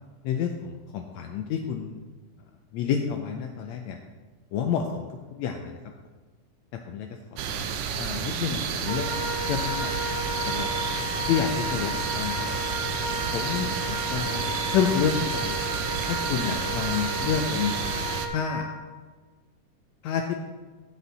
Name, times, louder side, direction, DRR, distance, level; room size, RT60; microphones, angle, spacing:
voice 1, 0.2-2.0 2.7-4.0 4.5-5.7 6.9-7.1 8.0-9.1 9.4-9.9 10.5-10.7 11.3-12.7 13.3-13.7 14.1-15.6 16.1-17.8 18.3-18.7 20.0-20.4, left 7 dB, 80° left, 4 dB, 1.7 m, -29 dB
sound 1, 7.4-18.3, right 7 dB, 80° right, 1.4 m, -30 dB
Wind instrument woodwind instrument, 8.8-18.7, left 1 dB, 35° left, 2.3 m, -33 dB
8.7 x 8.2 x 4.1 m, 1.4 s
omnidirectional pair, 3.6 m